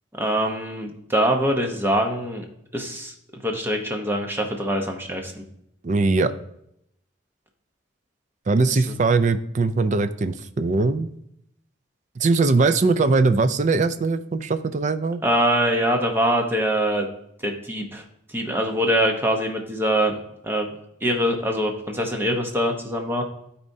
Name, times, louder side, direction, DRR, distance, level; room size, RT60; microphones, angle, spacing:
voice 1, 0.2-2.4 2.7-3.1 3.4-5.4 8.7-8.9 15.2-17.1 17.4-18.0 18.3-20.2 20.4-20.7 21.0-23.2, equal, 10° right, 2 dB, 0.9 m, -23 dB
voice 2, 5.8-6.3 8.5-11.1 12.2-15.2, right 3 dB, 40° right, 11 dB, 0.4 m, -21 dB
12.5 x 4.3 x 2.7 m, 0.75 s
head